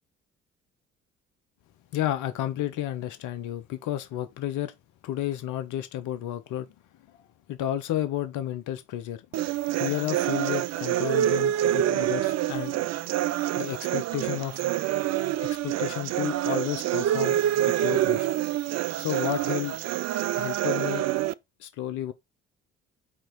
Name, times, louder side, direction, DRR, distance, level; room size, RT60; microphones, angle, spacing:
voice 1, 1.9-4.7 5.0-6.7 7.5-9.2 9.7-12.8 13.6-14.6 15.4-17.4 17.7-18.3 19.0-19.8 20.4-21.1 21.6-22.1, left 12 dB, 65° left, 0.9 m, -31 dB
sound 1, 9.3-21.3, right 12 dB, 55° right, 0.6 m, -26 dB
8.8 x 3.0 x 4.6 m
hypercardioid pair, 50°, 33 cm